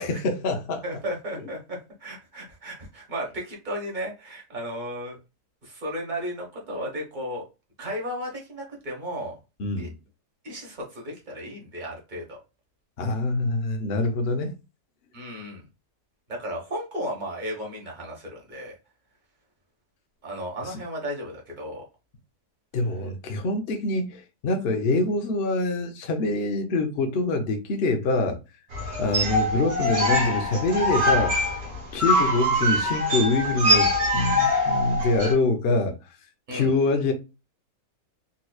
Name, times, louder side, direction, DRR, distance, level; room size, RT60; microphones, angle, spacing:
voice 1, 0.0-0.8 9.6-9.9 13.0-14.5 20.7-20.8 22.7-28.4 29.0-31.3 31.9-35.9 36.5-37.1, left 2 dB, 55° left, 0.7 m, -25 dB
voice 2, 0.8-5.2 5.6-7.4 7.8-9.4 9.8-9.9 10.4-12.4 15.1-15.6 16.3-18.8 20.2-21.8 36.5-36.7, equal, 30° right, 1.2 m, -34 dB
sound 1, 28.7-35.3, left 1 dB, 60° right, 1.4 m, -23 dB
4.1 x 2.9 x 2.3 m
omnidirectional pair, 1.8 m